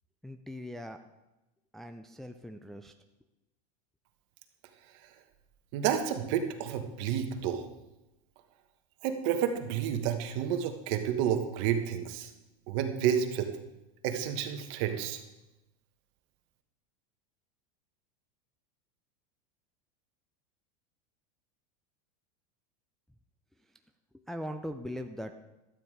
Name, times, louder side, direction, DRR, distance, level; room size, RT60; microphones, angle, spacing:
voice 1, 0.2-1.0 1.7-2.9 24.1-25.4, equal, ahead, 5 dB, 0.4 m, -40 dB
voice 2, 5.7-7.7 9.0-12.3 12.7-13.5 14.0-15.2, right 9 dB, 55° right, 6 dB, 1.4 m, -30 dB
12.0 x 9.1 x 4.8 m, 0.97 s
supercardioid pair, 140°, 19 cm